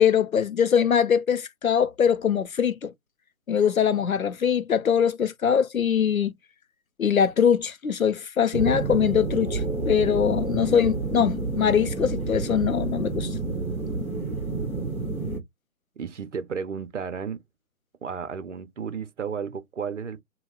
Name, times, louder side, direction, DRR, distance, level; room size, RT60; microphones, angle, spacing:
voice 1, 0.0-2.9 3.5-6.3 7.0-13.3, left 8 dB, 90° left, 0.6 m, -22 dB
sound 1, 8.5-15.4, right 3 dB, 10° left, 0.6 m, -29 dB
voice 2, 16.0-17.4 18.0-20.2, right 6 dB, 60° right, 0.8 m, -33 dB
3.1 x 2.3 x 3.4 m
figure-of-eight pair, 145°, 41 cm